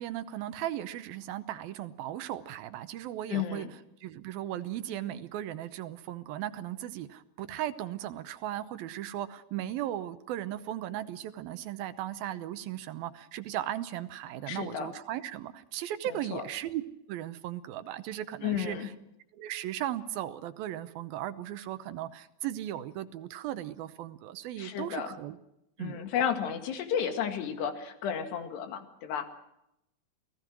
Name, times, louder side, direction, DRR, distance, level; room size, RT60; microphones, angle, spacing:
voice 1, 0.0-3.7 4.0-16.8 17.1-18.9 19.4-25.4 25.8-26.0, right 12 dB, 75° right, 12 dB, 2.5 m, -37 dB
voice 2, 3.3-3.7 14.5-14.9 16.1-16.4 18.4-18.9 24.6-25.1 25.8-29.3, left 8 dB, 80° left, 7 dB, 4.1 m, -32 dB
28.0 x 18.0 x 6.2 m, 0.82 s
omnidirectional pair, 4.7 m